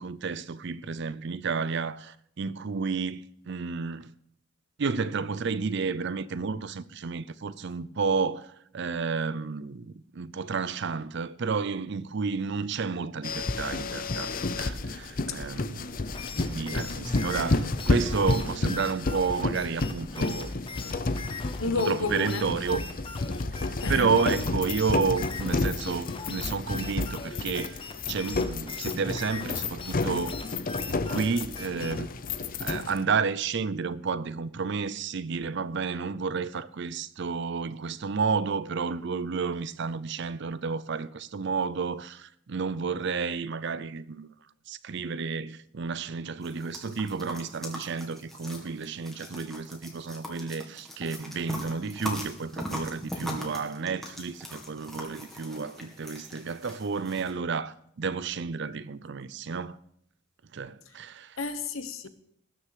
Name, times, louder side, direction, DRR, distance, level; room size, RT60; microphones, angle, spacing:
voice 1, 0.0-4.1 4.8-16.0 16.3-20.5 21.6-22.8 23.9-27.8 28.1-30.4 30.8-32.1 32.6-44.3 44.7-59.8 60.5-61.4, right 5 dB, 55° right, 0.5 m, -31 dB
sound 1, 13.2-33.0, left 3 dB, 40° left, 0.6 m, -31 dB
sound 2, 16.0-32.1, left 3 dB, 25° left, 0.9 m, -40 dB
voice 2, 16.7-17.0 21.6-22.5 23.8-24.1 61.4-62.1, left 4 dB, 75° left, 1.2 m, -31 dB
sound 3, 46.4-57.3, equal, ahead, 2.1 m, -40 dB
19.5 x 6.5 x 4.9 m
head